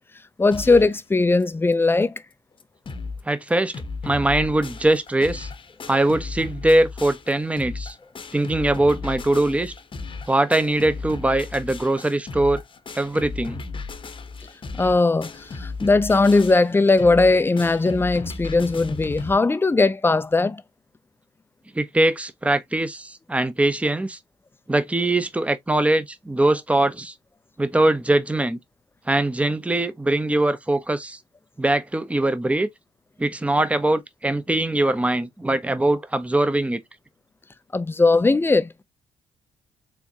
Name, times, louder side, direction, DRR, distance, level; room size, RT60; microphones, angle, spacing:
voice 1, 0.4-2.1 14.8-20.6 37.7-38.8, left 3 dB, 20° left, 0.5 m, -19 dB
sound 1, 0.5-1.0 1.4-1.5 1.7-1.8 2.3-2.4 2.6-3.2 3.5-19.3, left 4 dB, 40° left, 0.9 m, -35 dB
voice 2, 3.3-3.7 4.0-5.5 5.9-7.9 8.3-9.7 10.3-12.6 12.9-13.6 21.7-24.2 24.7-27.1 27.6-28.6 29.1-31.2 31.6-32.7 33.2-36.8, right 1 dB, 10° right, 0.8 m, -22 dB
4.5 x 3.4 x 2.8 m
supercardioid pair, 65°, 13 cm